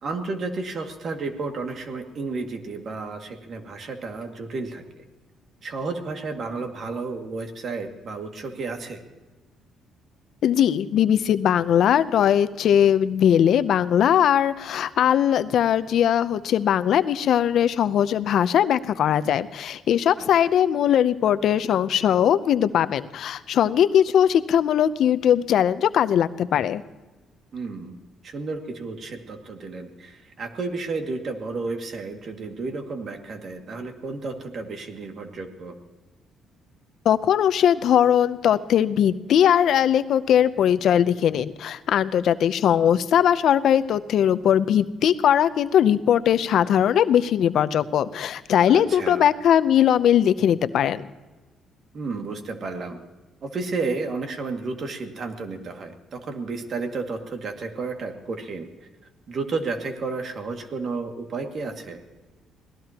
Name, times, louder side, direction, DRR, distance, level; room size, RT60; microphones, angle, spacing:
voice 1, 0.0-4.8 5.6-9.0 20.2-20.5 27.5-28.0 28.2-35.7 48.7-49.2 51.9-53.0 53.4-58.7 59.3-62.0, right 3 dB, 50° right, 4 dB, 2.2 m, -32 dB
voice 2, 10.4-26.8 37.1-51.1, left 9 dB, 70° left, 12 dB, 0.7 m, -20 dB
25.5 x 18.0 x 3.0 m, 1.2 s
cardioid pair, 90°, 0 cm